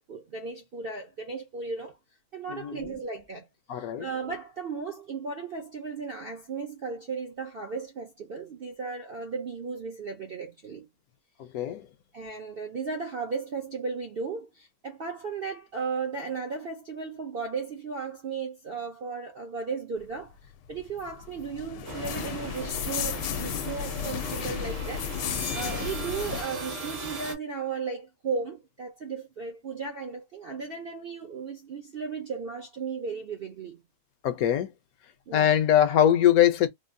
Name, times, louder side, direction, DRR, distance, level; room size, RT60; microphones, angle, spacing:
voice 1, 0.1-2.0 2.3-3.5 3.7-10.9 12.1-20.4 20.7-33.8 35.3-35.6, right 5 dB, 80° right, 0.5 m, -35 dB
voice 2, 2.5-2.9 3.7-4.1 11.4-11.9 34.2-34.7 35.3-36.7, left 10 dB, 70° left, 0.9 m, -22 dB
sound 1, 20.5-26.4, left 9 dB, 85° left, 1.2 m, -34 dB
sound 2, 21.8-27.3, right 2 dB, 50° right, 0.9 m, -38 dB
3.7 x 2.0 x 2.5 m
omnidirectional pair, 1.8 m